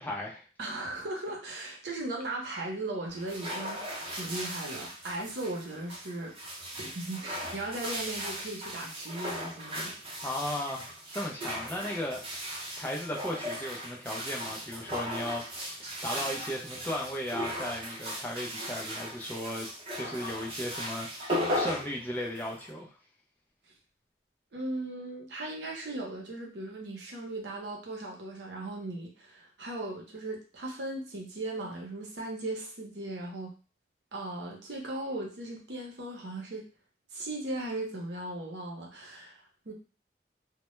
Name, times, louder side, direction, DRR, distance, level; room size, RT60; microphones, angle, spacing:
voice 1, 0.0-0.4 10.2-12.2 12.8-19.7 19.9-22.9, left 1 dB, 10° left, -2 dB, 0.4 m, -36 dB
voice 2, 0.6-3.8 4.1-6.4 6.6-10.2 24.5-33.5 34.1-36.7 37.1-39.7, right 2 dB, 85° right, 0 dB, 0.7 m, -37 dB
sound 1, 3.1-22.7, equal, 30° right, 0.6 m, -37 dB
2.1 x 2.1 x 3.0 m, 0.35 s
head